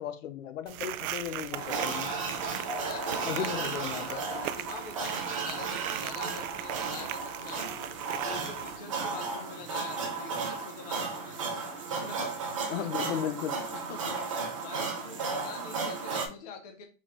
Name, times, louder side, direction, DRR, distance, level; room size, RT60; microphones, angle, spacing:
voice 1, 0.0-2.1 3.2-4.2 12.7-13.6, left 9 dB, 65° left, 0.7 m, -35 dB
sound 1, 0.7-8.8, right 12 dB, 85° right, 0.5 m, -39 dB
sound 2, 1.5-16.3, right 4 dB, 25° right, 0.4 m, -34 dB
voice 2, 2.3-7.7 8.2-11.4 11.9-12.4 12.7-13.2 13.7-14.2 14.6-16.9, left 5 dB, 30° left, 0.5 m, -45 dB
4.6 x 3.6 x 3.0 m
supercardioid pair, 170°, 42 cm